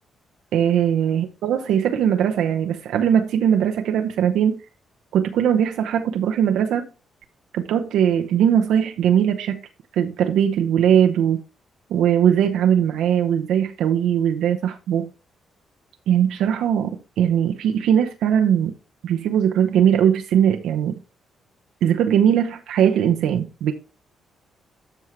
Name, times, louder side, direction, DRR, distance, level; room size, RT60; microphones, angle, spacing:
voice 1, 0.5-4.6 5.1-6.9 7.5-9.6 10.0-11.4 11.9-15.1 16.1-18.7 19.0-21.0 21.8-23.7, right 9 dB, 75° right, 0.7 m, -20 dB
12.5 x 4.6 x 3.3 m
hypercardioid pair, 45°, 0 cm